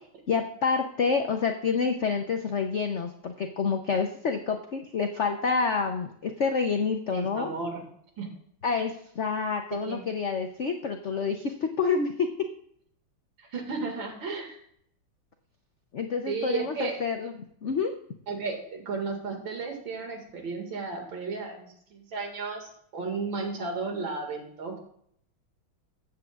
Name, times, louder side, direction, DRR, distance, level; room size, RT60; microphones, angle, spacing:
voice 1, 0.3-7.5 8.6-12.3 15.9-17.3 17.6-17.9, left 5 dB, 90° left, 4 dB, 0.6 m, -28 dB
voice 2, 7.1-7.9 8.2-8.3 9.8-10.0 13.4-14.6 16.3-17.0 18.3-24.8, right 4 dB, 65° right, 2 dB, 2.7 m, -34 dB
14.5 x 8.6 x 2.4 m, 0.67 s
omnidirectional pair, 2.3 m